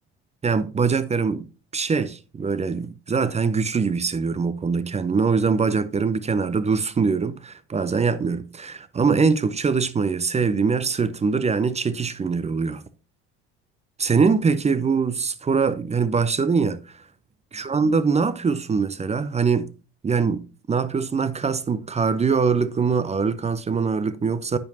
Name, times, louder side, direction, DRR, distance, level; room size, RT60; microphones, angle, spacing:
voice 1, 0.4-1.5 1.7-12.8 14.0-17.0 17.5-19.7 20.0-20.4 20.7-24.6, right 5 dB, 20° right, 0.6 m, -23 dB
10.5 x 7.7 x 2.7 m
hypercardioid pair, 65°, 33 cm